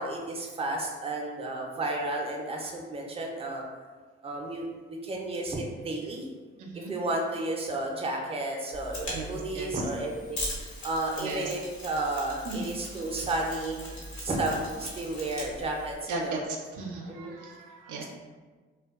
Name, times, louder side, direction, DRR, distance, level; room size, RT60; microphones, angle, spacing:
voice 1, 0.0-3.6 4.2-4.7 5.0-6.3 6.9-10.4 10.8-13.9 14.2-16.4 17.1-17.3, right 2 dB, 20° right, 0 dB, 0.5 m, -32 dB
voice 2, 6.6-6.9 9.1-9.7 11.2-11.5 12.4-12.7 13.9-14.2 16.1-18.1, right 3 dB, 70° right, 0 dB, 0.5 m, -36 dB
Mechanisms, 8.7-15.9, left 1 dB, 60° left, 1.1 m, -40 dB
2.5 x 2.2 x 2.3 m, 1.4 s
supercardioid pair, 50°, 31 cm